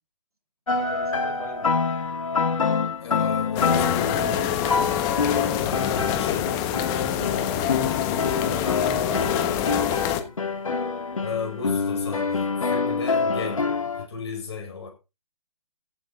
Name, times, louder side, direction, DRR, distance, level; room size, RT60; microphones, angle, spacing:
sound 1, 0.7-14.1, left 4 dB, 60° left, 1.9 m, -26 dB
voice 1, 0.7-1.7 7.7-10.4, right 1 dB, 80° right, 2.6 m, -42 dB
voice 2, 3.0-4.7 5.6-6.6 11.2-13.7 14.0-14.9, left 5 dB, 45° left, 6.5 m, -35 dB
sound 2, 3.6-10.2, left 11 dB, 20° left, 1.2 m, -26 dB
14.5 x 9.1 x 3.8 m
figure-of-eight pair, 135°, 19 cm